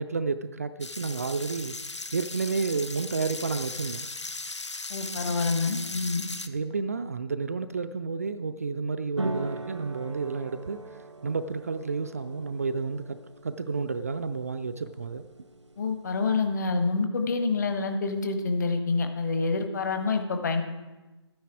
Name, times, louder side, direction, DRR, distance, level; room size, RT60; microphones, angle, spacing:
voice 1, 0.0-1.8 2.1-4.1 6.5-10.8 11.2-15.2, right 4 dB, 35° right, 10 dB, 0.4 m, -31 dB
sound 1, 0.8-6.5, left 3 dB, 80° left, 0.8 m, -37 dB
voice 2, 4.9-6.3 15.8-20.6, left 4 dB, 40° left, 6 dB, 1.2 m, -27 dB
sound 2, 9.2-16.5, right 2 dB, 80° right, 0.9 m, -40 dB
12.0 x 9.4 x 4.7 m, 1.1 s
figure-of-eight pair, 150°, 15 cm